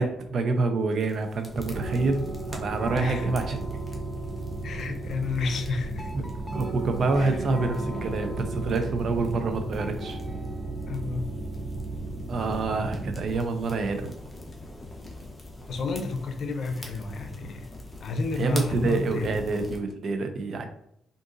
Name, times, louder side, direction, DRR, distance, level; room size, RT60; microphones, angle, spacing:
voice 1, 0.0-3.8 6.1-6.2 6.5-10.2 12.3-14.1 18.4-20.6, right 3 dB, 55° right, 7 dB, 0.5 m, -27 dB
sound 1, 0.9-19.8, left 1 dB, 15° left, 0.8 m, -45 dB
sound 2, 1.5-13.3, right 2 dB, 25° right, 0.9 m, -34 dB
voice 2, 2.9-3.3 4.6-6.1 7.2-7.4 10.9-11.3 15.7-17.7 18.0-19.3, left 3 dB, 60° left, 6 dB, 0.5 m, -30 dB
sound 3, 6.0-8.6 9.7-11.5, right 1 dB, 5° right, 0.4 m, -47 dB
3.7 x 2.5 x 2.5 m, 0.73 s
cardioid pair, 90°, 0 cm